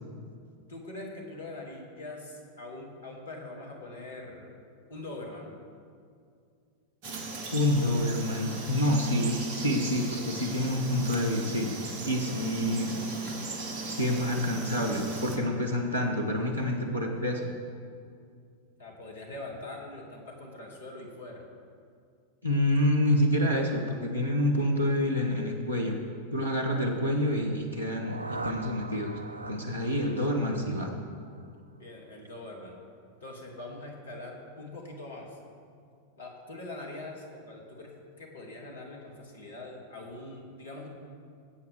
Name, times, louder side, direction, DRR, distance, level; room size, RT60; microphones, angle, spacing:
voice 1, 0.7-4.5 4.9-5.5 18.8-21.5 31.8-32.7 33.2-35.4 36.2-40.9, left 2 dB, 70° left, -1 dB, 2.6 m, -43 dB
Frog, 7.0-15.4, right 3 dB, 45° right, 1.8 m, -37 dB
voice 2, 7.5-11.7 12.0-12.9 13.9-17.5 22.4-26.0 26.3-29.2 29.5-30.9, left 1 dB, 90° left, 0 dB, 1.2 m, -27 dB
sound 1, 27.7-31.6, right 3 dB, 80° right, 0.4 m, -41 dB
20.5 x 8.2 x 3.6 m, 2.3 s
figure-of-eight pair, 90°, 0 cm